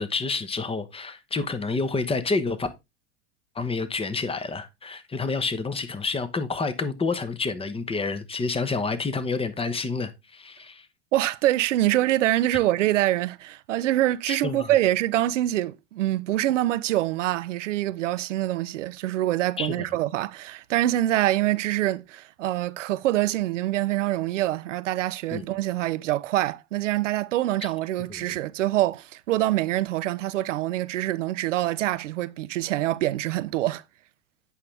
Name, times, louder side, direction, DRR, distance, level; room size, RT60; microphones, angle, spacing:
voice 1, 0.0-2.7 3.5-10.9 14.3-14.7 19.6-19.9 25.3-25.5 28.1-28.3, left 4 dB, 15° left, 1.1 m, -29 dB
voice 2, 11.1-33.8, right 14 dB, 90° right, 0.5 m, -25 dB
8.5 x 5.7 x 3.3 m
hypercardioid pair, 95°, 36 cm